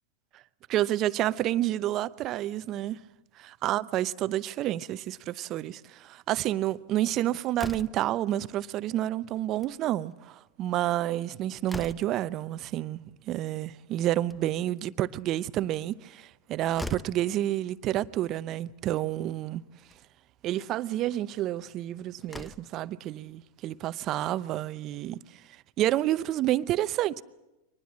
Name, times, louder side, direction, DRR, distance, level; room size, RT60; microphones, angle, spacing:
voice 1, 0.7-3.0 3.4-13.0 13.3-19.6 20.4-25.2 25.8-27.2, right 13 dB, 40° right, 0.7 m, -29 dB
Slam, 7.5-8.2 9.4-9.8 10.1-10.2 10.5-10.6 11.1-12.3 14.0-14.7 16.3-16.4 16.7-17.3 18.4-18.5 18.9-19.0 19.8-20.0 21.7-21.8 22.2-22.8, left 1 dB, 5° left, 0.7 m, -41 dB
23.5 x 19.5 x 7.5 m
hypercardioid pair, 105°, 0 cm